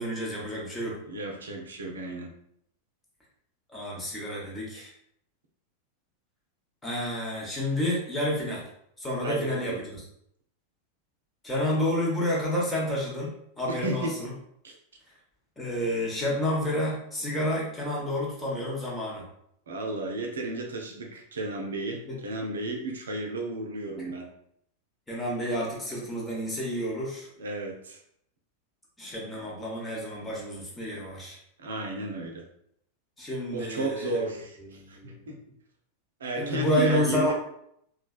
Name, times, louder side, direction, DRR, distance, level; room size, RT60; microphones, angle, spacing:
voice 1, 0.0-1.0 3.7-4.9 6.8-8.7 9.0-10.0 11.4-14.3 15.6-19.3 22.0-22.2 24.0-24.1 25.1-27.3 29.0-31.4 33.2-35.2 36.4-37.3, left 1 dB, 10° left, -4 dB, 1.0 m, -30 dB
voice 2, 1.1-2.3 4.8-4.9 9.2-9.8 13.7-14.1 14.6-14.8 19.7-24.3 27.4-28.0 31.6-32.4 33.5-35.4 36.2-37.3, right 2 dB, 65° right, 1 dB, 0.6 m, -33 dB
3.2 x 2.2 x 2.3 m, 0.72 s
figure-of-eight pair, 90°, 0 cm